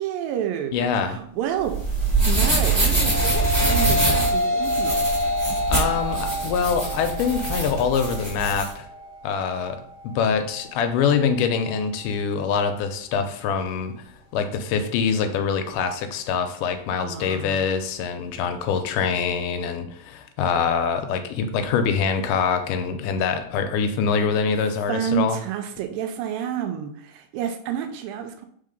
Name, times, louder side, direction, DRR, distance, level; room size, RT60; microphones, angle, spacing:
voice 1, 0.0-1.8 2.3-5.1 17.0-17.7 24.9-28.5, right 9 dB, 80° right, 6 dB, 2.3 m, -29 dB
voice 2, 0.7-1.2 5.7-8.9 9.2-9.8 10.0-13.9 14.3-25.4, left 6 dB, 80° left, 6 dB, 2.0 m, -24 dB
sound 1, 1.6-8.7, right 3 dB, 20° right, 1.1 m, -24 dB
sound 2, 2.6-11.8, left 1 dB, 40° right, 1.0 m, -28 dB
4.9 x 3.7 x 5.2 m, 0.63 s
omnidirectional pair, 4.1 m